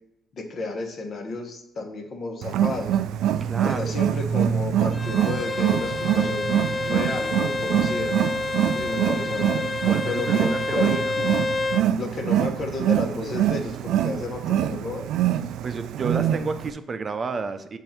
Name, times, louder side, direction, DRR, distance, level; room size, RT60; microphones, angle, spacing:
voice 1, 0.3-3.0 3.6-8.1 8.7-11.2 12.0-15.1, left 3 dB, 50° left, 3 dB, 1.2 m, -32 dB
Wild animals, 2.4-16.7, right 10 dB, 85° right, 0.3 m, -25 dB
voice 2, 3.4-4.0 9.9-11.1 15.6-17.8, right 4 dB, 40° right, 10 dB, 0.6 m, -31 dB
Bowed string instrument, 4.9-11.9, left 3 dB, 25° left, 0.4 m, -28 dB
7.4 x 2.7 x 5.8 m, 0.77 s
cardioid pair, 95°, 0 cm